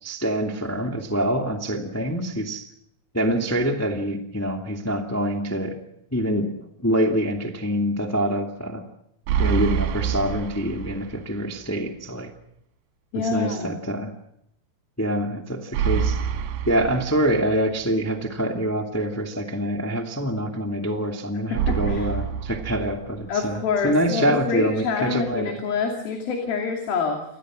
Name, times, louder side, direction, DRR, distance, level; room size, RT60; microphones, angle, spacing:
voice 1, 0.0-2.7 3.1-5.8 6.1-6.5 6.8-8.8 9.4-12.3 13.3-14.1 15.0-16.2 16.6-23.6 23.8-25.5, right 1 dB, 10° left, 4 dB, 0.9 m, -25 dB
sound 1, 9.3-11.3 11.6-11.7 15.7-17.7 21.6-23.5, right 8 dB, 75° right, 3.3 m, -27 dB
voice 2, 13.1-13.7 21.5-22.1 23.3-27.2, left 5 dB, 60° left, 3 dB, 4.3 m, -26 dB
29.0 x 21.5 x 6.4 m, 0.78 s
omnidirectional pair, 5.0 m